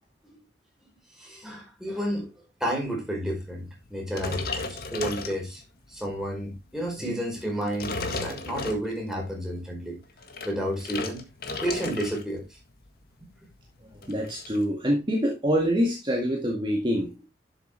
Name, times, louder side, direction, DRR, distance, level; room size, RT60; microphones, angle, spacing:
voice 1, 1.2-2.3 2.6-5.6 5.9-10.0 10.4-11.2 11.6-12.4, right 1 dB, 5° right, 4.7 m, -31 dB
sound 1, 4.1-5.9 6.4-6.6 7.4-9.2 10.0-12.3 12.6-12.9 13.2-13.3 13.5-14.6, left 3 dB, 60° left, 1.7 m, -34 dB
voice 2, 14.0-17.1, equal, 30° right, 1.9 m, -25 dB
11.5 x 7.0 x 3.3 m
head